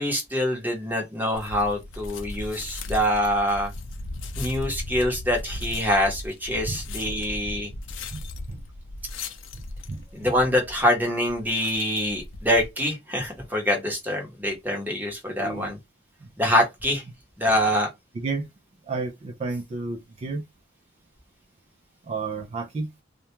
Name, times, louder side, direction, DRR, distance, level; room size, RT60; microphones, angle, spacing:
voice 1, 0.0-3.7 4.4-7.7 10.1-15.8 16.4-17.0 17.4-17.9, equal, 10° right, 0.8 m, -25 dB
sound 1, 1.3-12.7, left 2 dB, 85° left, 0.5 m, -37 dB
voice 2, 15.4-15.7 16.2-16.3 18.1-18.5 18.9-20.4 22.0-22.9, right 3 dB, 35° right, 0.3 m, -31 dB
2.3 x 2.1 x 2.9 m
head